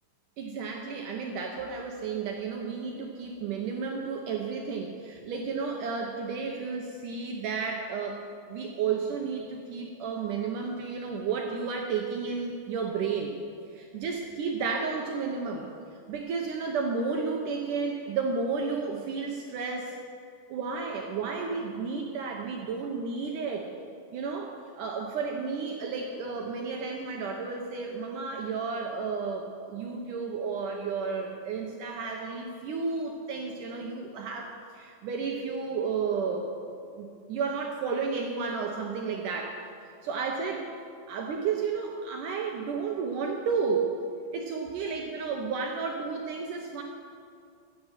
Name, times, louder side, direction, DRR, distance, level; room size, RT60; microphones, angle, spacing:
voice 1, 0.4-8.2 8.5-13.3 13.7-15.7 16.1-20.0 20.5-23.7 24.1-39.6 40.0-40.7 41.1-43.9 44.3-46.8, right 5 dB, 80° right, 1 dB, 1.8 m, -32 dB
13.5 x 7.6 x 9.0 m, 2.3 s
omnidirectional pair, 5.0 m